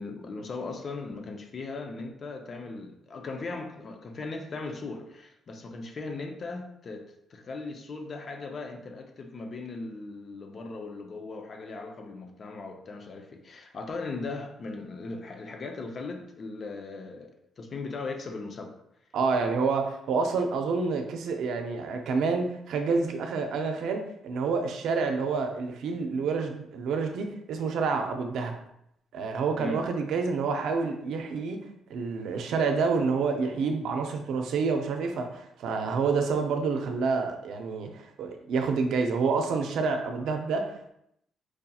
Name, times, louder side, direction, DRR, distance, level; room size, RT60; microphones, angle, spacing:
voice 1, 0.0-18.8 29.6-29.8, left 3 dB, 45° left, 0.6 m, -38 dB
voice 2, 19.1-28.5 29.1-31.6 31.9-40.9, right 4 dB, 80° right, 0.5 m, -28 dB
4.7 x 2.8 x 2.3 m
cardioid pair, 90°, 0 cm